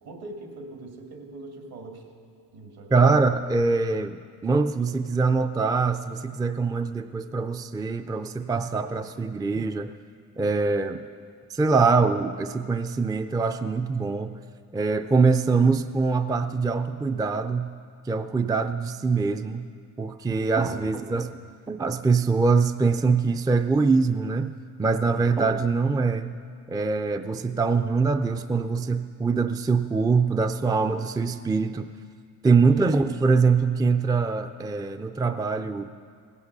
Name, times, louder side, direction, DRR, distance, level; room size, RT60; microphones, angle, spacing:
voice 1, 0.0-2.1 2.5-3.2 20.2-21.0 21.4-21.6 25.0-25.3 32.6-32.7, right 2 dB, 70° right, 2 dB, 2.4 m, -42 dB
voice 2, 2.9-9.9 10.4-11.0 11.5-14.4 14.7-17.7 18.1-19.7 20.0-21.3 21.7-26.4 26.7-31.9 32.4-35.9, right 4 dB, 10° right, 8 dB, 0.4 m, -23 dB
16.5 x 8.3 x 6.6 m, 2.1 s
cardioid pair, 80°, 39 cm